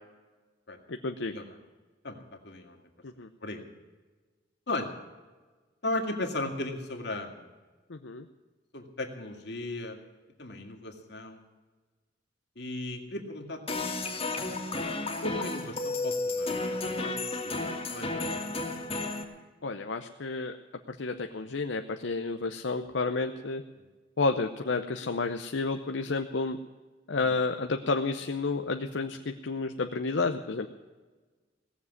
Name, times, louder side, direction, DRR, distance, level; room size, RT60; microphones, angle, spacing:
voice 1, 0.9-1.3 3.0-3.3 7.9-8.2 19.6-20.5 20.9-23.6 24.2-26.6 27.1-30.7, left 3 dB, 85° left, 6 dB, 0.8 m, -31 dB
voice 2, 2.0-2.8 3.4-3.6 4.7-4.9 5.8-7.5 8.7-10.0 10.4-11.4 12.6-14.1 15.2-18.6 21.3-21.5 23.8-23.9, left 2 dB, 65° left, 3 dB, 2.3 m, -37 dB
sound 1, 13.7-19.2, left 2 dB, 35° left, 2.0 m, -32 dB
18.0 x 7.4 x 9.5 m, 1.3 s
head